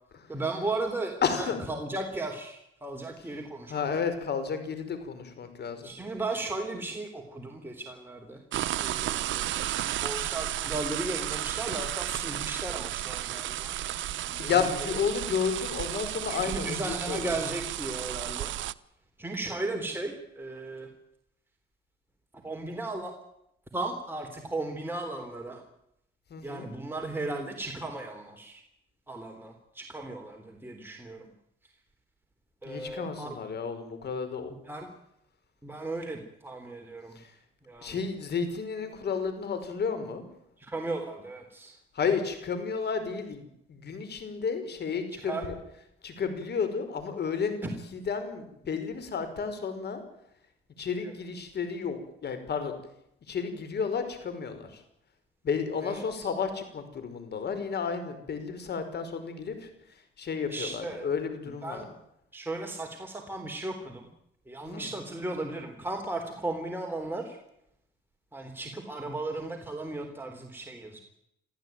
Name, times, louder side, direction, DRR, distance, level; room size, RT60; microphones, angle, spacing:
voice 1, 0.3-3.9 5.8-8.4 8.8-9.7 9.9-13.8 14.2-14.5 16.3-18.5 19.2-20.9 22.4-23.2 23.7-25.6 26.4-28.6 29.1-31.3 32.6-33.4 34.7-34.9 35.6-37.2 37.7-38.0 40.6-41.8 45.1-45.4 47.6-47.7 51.0-51.1 55.8-56.3 60.5-61.1 61.6-61.8 62.3-64.1 64.5-67.4 68.3-71.0, right 2 dB, 10° right, 2 dB, 3.7 m, -36 dB
voice 2, 1.2-1.6 3.7-5.9 14.4-17.2 26.3-26.7 32.6-34.5 37.2-37.3 37.8-40.2 42.0-45.5 46.0-47.5 47.9-50.0 50.8-52.7 53.3-54.8 55.4-59.7 60.2-61.8 64.6-64.9, left 6 dB, 55° left, 9 dB, 5.4 m, -32 dB
sound 1, 8.5-18.7, right 13 dB, 75° right, 0.9 m, -33 dB
25.0 x 15.0 x 9.3 m, 0.79 s
cardioid pair, 90°, 20 cm